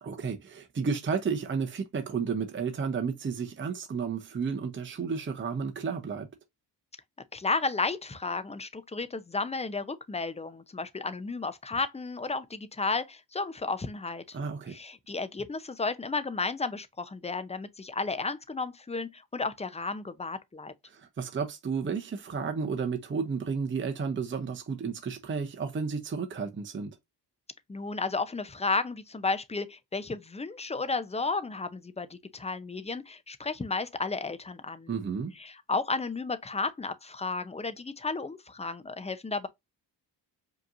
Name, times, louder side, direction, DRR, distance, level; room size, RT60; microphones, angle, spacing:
voice 1, 0.0-6.3 14.3-14.8 20.9-26.9 34.9-35.3, right 5 dB, 30° right, 0.7 m, -32 dB
voice 2, 7.3-14.4 14.7-20.7 27.7-34.9 35.4-39.5, left 3 dB, 15° left, 0.6 m, -33 dB
5.0 x 3.0 x 2.5 m
cardioid pair, 110°, 42 cm